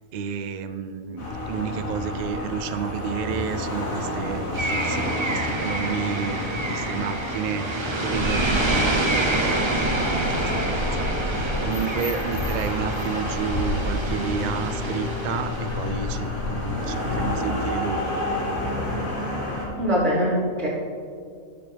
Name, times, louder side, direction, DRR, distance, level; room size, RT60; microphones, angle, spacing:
voice 1, 0.1-18.0, right 7 dB, 75° right, 9 dB, 0.4 m, -31 dB
sound 1, 1.2-19.7, left 1 dB, 85° left, 2.5 m, -29 dB
sound 2, 4.5-15.9, right 2 dB, 25° right, 0.8 m, -28 dB
voice 2, 19.8-20.7, equal, 55° right, -8 dB, 3.5 m, -22 dB
17.5 x 6.9 x 3.4 m, 2.3 s
omnidirectional pair, 1.4 m